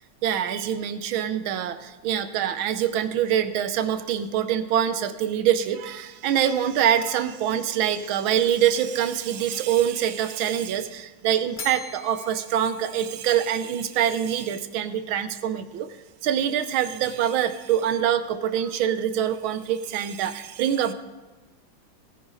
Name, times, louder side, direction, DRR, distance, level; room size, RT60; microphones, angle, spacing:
voice 1, 0.2-15.9 16.2-20.9, right 9 dB, 80° right, 12 dB, 1.5 m, -25 dB
Bell, 11.6-13.8, left 3 dB, 40° left, 0.7 m, -42 dB
19.0 x 9.9 x 3.8 m, 1.2 s
omnidirectional pair, 2.2 m